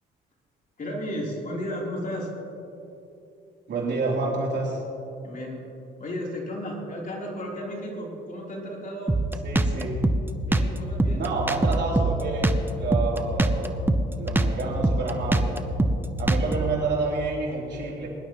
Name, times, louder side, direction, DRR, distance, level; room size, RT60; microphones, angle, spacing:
voice 1, 0.8-2.3 5.2-5.6 6.0-9.2 10.5-11.3, equal, 40° left, -3 dB, 3.7 m, -33 dB
voice 2, 3.7-4.8 9.4-10.1 11.1-13.8 14.2-15.7 16.2-18.1, right 3 dB, 60° right, -3 dB, 3.6 m, -29 dB
Drum kit, 9.1-16.7, right 2 dB, 10° right, 0.7 m, -24 dB
23.0 x 11.5 x 3.1 m, 2.9 s
cardioid pair, 90°, 20 cm